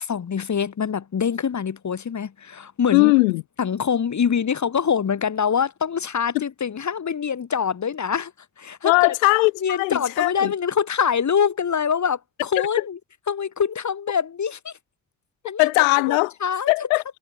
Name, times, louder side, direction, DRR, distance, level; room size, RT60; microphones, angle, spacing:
voice 1, 0.1-3.1 3.6-8.3 8.6-9.1 9.6-13.0 13.3-14.7 15.4-15.7 16.1-16.7, left 7 dB, 45° left, 5.0 m, -24 dB
voice 2, 2.9-3.4 6.3-6.4 8.8-10.5 15.6-16.3 16.7-17.0, left 26 dB, 75° left, 3.2 m, -19 dB
figure-of-eight pair, 40°, 40 cm